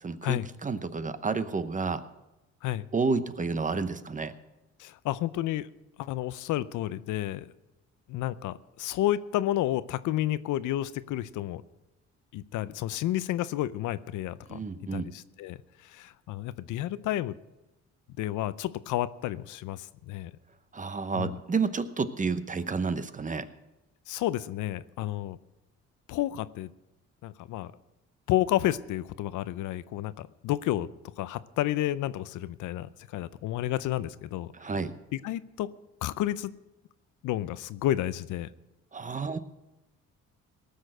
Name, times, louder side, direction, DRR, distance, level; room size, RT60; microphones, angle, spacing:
voice 1, 0.0-2.0 2.9-4.3 14.5-15.1 20.7-23.5 34.5-34.9 38.9-39.4, right 4 dB, 25° right, 12 dB, 0.9 m, -30 dB
voice 2, 4.8-5.7 6.0-7.5 8.1-11.6 12.3-14.6 14.9-17.4 18.2-20.3 21.1-21.4 24.1-25.4 26.1-26.7 27.2-27.7 28.3-34.5 35.1-35.7 36.0-36.5 37.2-38.5, left 14 dB, 85° left, 16 dB, 0.6 m, -31 dB
18.0 x 6.4 x 7.8 m, 0.99 s
cardioid pair, 90°, 30 cm